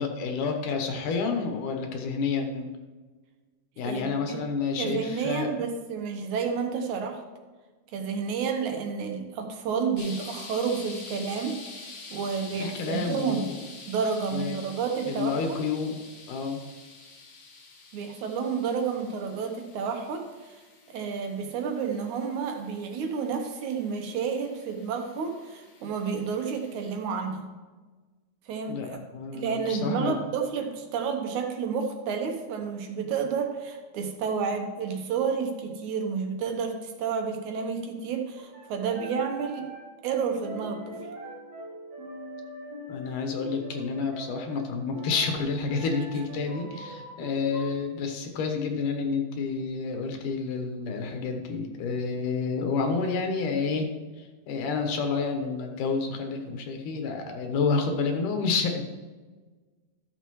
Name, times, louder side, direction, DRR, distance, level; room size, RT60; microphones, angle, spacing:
voice 1, 0.0-2.7 3.8-5.5 12.6-13.6 14.3-14.6 15.1-16.6 28.7-30.2 42.9-53.9 54.2-58.8, left 4 dB, 90° left, 4 dB, 2.7 m, -29 dB
voice 2, 3.8-4.4 4.8-7.2 7.9-11.6 12.1-13.5 13.9-15.6 17.9-20.6 20.9-27.5 28.5-29.0 29.3-39.7 40.0-41.1, right 6 dB, 75° right, 4 dB, 2.3 m, -30 dB
sound 1, 10.0-27.0, left 3 dB, 50° left, 1.8 m, -47 dB
sound 2, 38.4-47.8, right 1 dB, 35° right, 1.4 m, -43 dB
13.0 x 6.8 x 3.1 m, 1.3 s
omnidirectional pair, 3.6 m